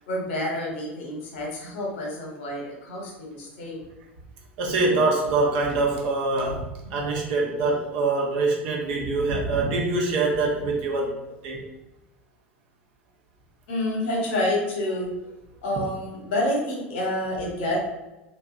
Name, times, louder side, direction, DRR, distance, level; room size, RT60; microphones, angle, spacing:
voice 1, 0.1-3.8 13.7-15.3 15.6-17.9, left 1 dB, 60° left, -2 dB, 0.8 m, -28 dB
voice 2, 4.6-11.6, right 3 dB, 60° right, -1 dB, 0.6 m, -24 dB
2.7 x 2.2 x 2.3 m, 0.99 s
figure-of-eight pair, 75°, 6 cm